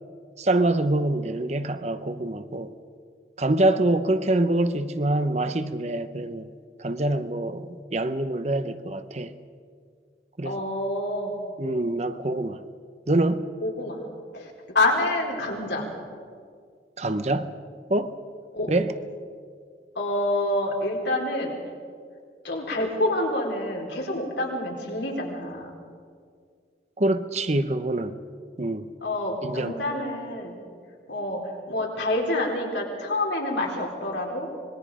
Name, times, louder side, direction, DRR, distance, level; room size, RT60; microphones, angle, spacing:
voice 1, 0.4-2.7 3.4-6.5 6.8-9.3 10.4-10.6 11.6-12.6 13.1-13.5 17.0-17.5 17.9-18.2 18.7-18.9 27.0-28.2 28.6-28.9 29.4-29.8, right 1 dB, 40° right, 0.9 m, -25 dB
voice 2, 10.4-11.3 13.6-14.0 14.3-15.9 18.5-18.7 19.9-21.5 22.4-25.7 29.0-30.5 31.1-34.5, left 1 dB, 80° left, 4.3 m, -27 dB
25.5 x 21.5 x 5.0 m
head